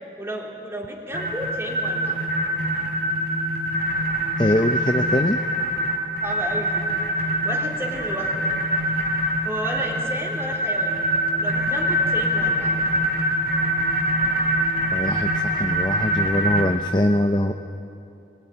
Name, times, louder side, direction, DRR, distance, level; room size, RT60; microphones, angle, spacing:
voice 1, 0.2-2.2 6.2-6.8 7.2-8.3 9.4-10.9 11.4-12.7, equal, 15° right, -1 dB, 3.4 m, -32 dB
sound 1, 1.1-16.7, equal, 55° right, 4.2 m, -24 dB
voice 2, 4.4-5.4 14.9-15.3 15.5-17.5, left 1 dB, 25° left, 5 dB, 0.7 m, -22 dB
22.5 x 21.0 x 9.9 m, 2.7 s
head